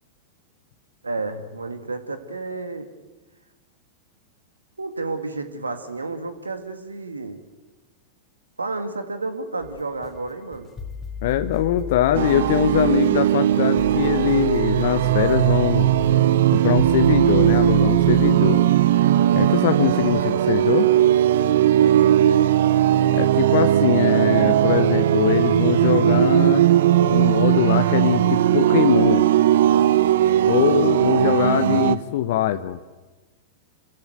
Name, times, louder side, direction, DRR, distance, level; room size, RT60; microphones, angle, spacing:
voice 1, 1.0-2.9 4.8-7.4 8.6-10.7 21.7-22.5 30.2-30.5, right 3 dB, 85° right, 8 dB, 2.0 m, -31 dB
sound 1, 9.6-18.3, left 4 dB, 20° left, 3.0 m, -35 dB
voice 2, 11.2-15.9 16.5-18.6 19.3-20.9 23.1-26.7 27.1-29.3 30.5-32.8, left 11 dB, 55° left, 10 dB, 0.9 m, -22 dB
sound 2, 12.1-32.0, right 12 dB, 60° right, 0.7 m, -18 dB
27.5 x 14.5 x 9.2 m, 1.2 s
figure-of-eight pair, 95°, 0 cm